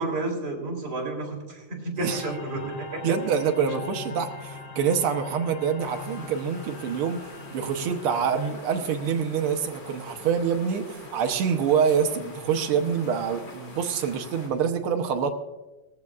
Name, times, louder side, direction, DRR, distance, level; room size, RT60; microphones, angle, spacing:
voice 1, 0.0-3.0, right 2 dB, 30° right, 0 dB, 3.5 m, -31 dB
sound 1, 2.0-8.5, left 4 dB, 40° left, 1.7 m, -41 dB
voice 2, 3.0-15.3, right 7 dB, 65° right, 5 dB, 1.4 m, -26 dB
sound 2, 5.8-14.5, left 2 dB, 65° left, 3.9 m, -44 dB
19.5 x 14.5 x 2.4 m, 1.1 s
omnidirectional pair, 3.4 m